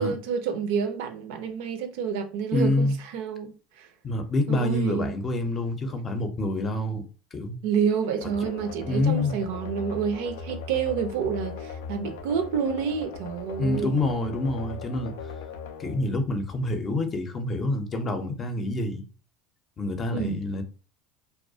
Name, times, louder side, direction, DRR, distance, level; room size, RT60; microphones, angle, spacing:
voice 1, 0.0-3.9 4.5-5.1 7.6-14.0 20.1-20.4, right 6 dB, 75° right, 0.4 m, -29 dB
voice 2, 2.5-2.9 4.0-7.6 8.9-9.4 13.6-15.1 15.8-19.0 19.8-20.6, left 2 dB, 35° left, 0.6 m, -27 dB
sound 1, 8.2-16.9, left 4 dB, 80° left, 0.3 m, -39 dB
2.3 x 2.1 x 2.6 m
hypercardioid pair, 90°, 0 cm